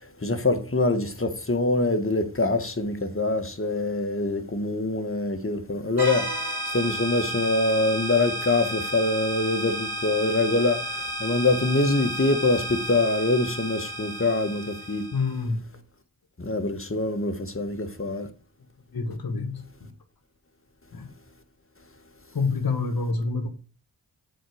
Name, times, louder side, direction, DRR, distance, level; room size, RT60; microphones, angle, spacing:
voice 1, 0.2-6.3 6.7-15.1 16.4-18.3, left 2 dB, 35° left, 1.5 m, -24 dB
sound 1, 6.0-15.4, equal, 85° right, 2.9 m, -32 dB
voice 2, 15.1-15.6 18.9-19.6 20.9-21.1 22.3-23.5, left 4 dB, 65° left, 1.4 m, -27 dB
7.9 x 4.5 x 6.6 m
cardioid pair, 40°, 39 cm